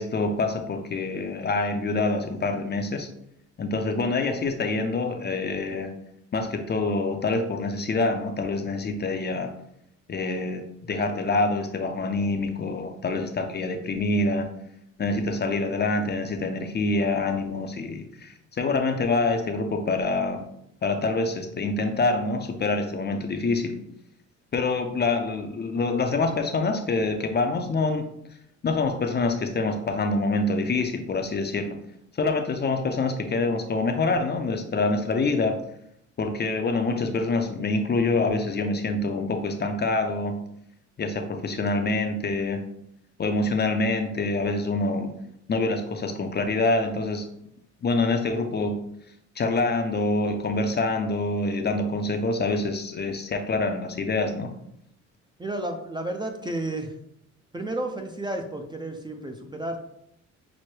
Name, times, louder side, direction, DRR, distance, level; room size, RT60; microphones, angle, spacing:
voice 1, 0.0-3.1 3.6-5.9 6.3-9.5 10.1-14.5 15.0-20.4 20.8-23.8 24.5-28.1 28.6-31.8 32.2-35.6 36.2-40.3 41.0-42.6 43.2-45.1 45.5-47.2 47.8-48.8 49.4-54.5, left 3 dB, 35° left, 5 dB, 0.5 m, -26 dB
voice 2, 55.4-56.9 57.5-59.8, right 1 dB, 15° right, 4 dB, 0.5 m, -32 dB
6.0 x 2.1 x 3.2 m, 0.75 s
cardioid pair, 90°, 30 cm